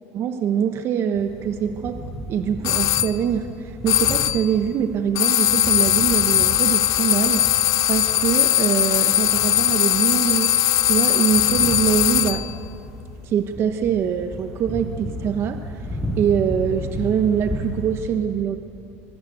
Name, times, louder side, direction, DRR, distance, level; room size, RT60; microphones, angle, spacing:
voice 1, 0.1-7.4 7.9-10.6 10.8-12.5 13.2-15.8 16.2-18.6, right 8 dB, 40° right, 7 dB, 1.1 m, -24 dB
sound 1, 1.1-18.0, equal, ahead, 6.9 m, -34 dB
sound 2, 2.6-3.2 3.9-4.5 5.2-12.5, left 15 dB, 55° left, 0.6 m, -19 dB
24.0 x 23.0 x 8.1 m, 2.7 s
cardioid pair, 140°, 6 cm